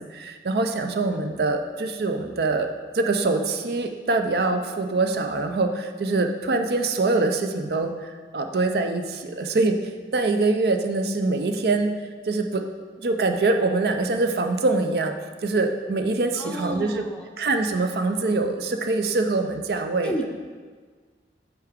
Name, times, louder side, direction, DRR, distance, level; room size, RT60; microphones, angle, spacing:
voice 1, 0.0-2.7 2.9-9.8 10.1-11.9 12.3-12.6 13.0-15.1 15.4-17.0 17.4-20.1, right 3 dB, 60° right, 6 dB, 0.5 m, -24 dB
voice 2, 16.4-17.3 20.0-20.3, equal, 5° left, 3 dB, 0.4 m, -32 dB
7.9 x 4.6 x 3.5 m, 1.5 s
head